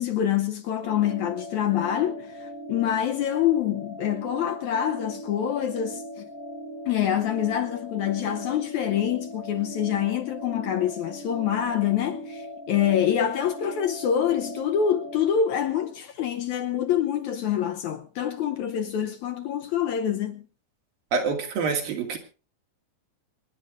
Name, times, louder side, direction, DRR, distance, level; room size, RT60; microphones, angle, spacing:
voice 1, 0.0-6.3 6.9-20.4, left 9 dB, 70° left, 1.9 m, -26 dB
sound 1, 0.8-15.3, equal, 20° right, 2.1 m, -39 dB
voice 2, 21.1-22.2, right 5 dB, 75° right, 4.2 m, -26 dB
25.5 x 10.5 x 3.7 m
omnidirectional pair, 4.1 m